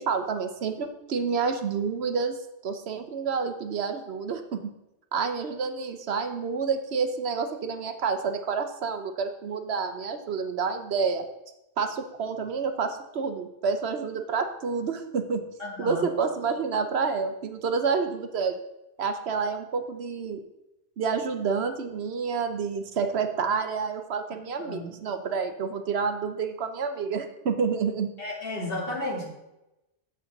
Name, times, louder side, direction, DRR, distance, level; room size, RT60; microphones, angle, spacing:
voice 1, 0.0-2.4 2.6-4.7 5.1-11.2 11.8-15.4 15.8-18.5 19.0-20.4 21.0-28.1, right 5 dB, 65° right, 7 dB, 1.0 m, -29 dB
voice 2, 15.6-16.1 24.3-25.0 28.2-29.3, left 1 dB, 55° left, -2 dB, 2.4 m, -33 dB
8.3 x 7.5 x 3.9 m, 0.94 s
omnidirectional pair, 1.2 m